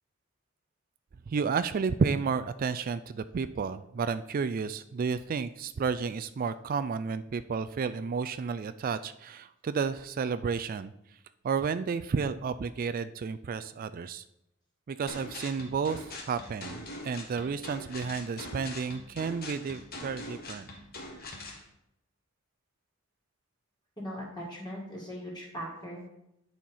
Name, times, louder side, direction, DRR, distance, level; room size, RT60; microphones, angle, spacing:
voice 1, 1.3-10.9 11.4-14.2 14.9-20.7, right 5 dB, 40° right, 13 dB, 0.3 m, -31 dB
sound 1, 15.1-21.6, left 2 dB, 45° left, 1.5 m, -43 dB
voice 2, 24.0-26.2, equal, 20° left, -5 dB, 2.2 m, -40 dB
9.9 x 4.5 x 5.6 m, 0.81 s
head